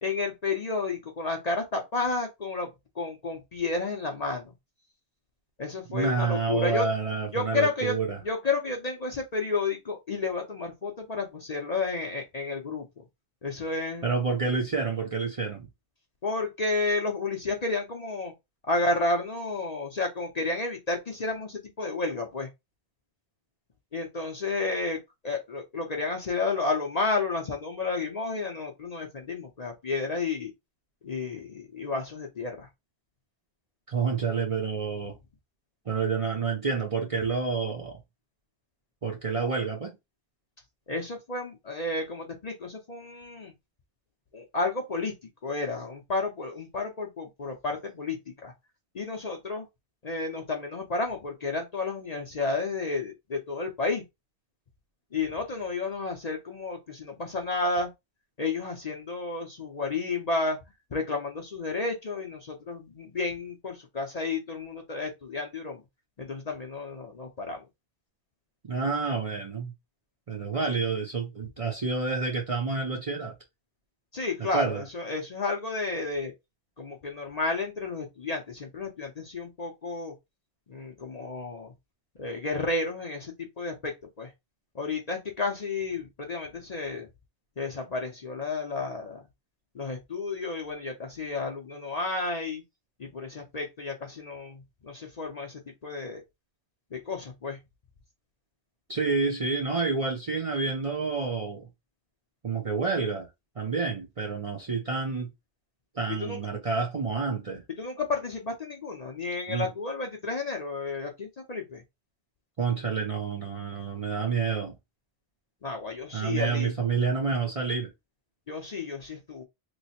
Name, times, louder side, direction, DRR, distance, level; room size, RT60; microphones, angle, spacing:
voice 1, 0.0-2.7 3.0-4.5 5.6-6.9 7.3-8.0 8.2-13.0 13.4-14.1 16.2-18.3 18.7-22.5 23.9-30.5 31.0-32.7 40.9-43.5 44.3-45.1 45.4-48.5 48.9-49.7 50.0-54.0 55.1-57.9 58.4-60.6 60.9-65.8 66.2-67.6 74.1-76.3 76.8-80.1 80.7-81.7 82.2-84.3 84.7-87.1 87.6-89.2 89.7-92.6 93.0-96.2 96.9-97.6 106.2-106.4 107.8-111.8 115.6-116.7 118.5-119.4, left 3 dB, 45° left, 0.7 m, -31 dB
voice 2, 5.9-8.2 14.0-15.7 33.9-35.2 35.9-38.0 39.0-40.0 68.7-69.7 70.3-73.3 74.4-74.8 98.9-101.7 102.4-103.3 103.6-105.3 105.9-107.6 109.5-109.7 112.6-114.7 116.1-117.9, right 4 dB, 40° right, 0.6 m, -29 dB
3.1 x 2.1 x 4.1 m
omnidirectional pair, 1.0 m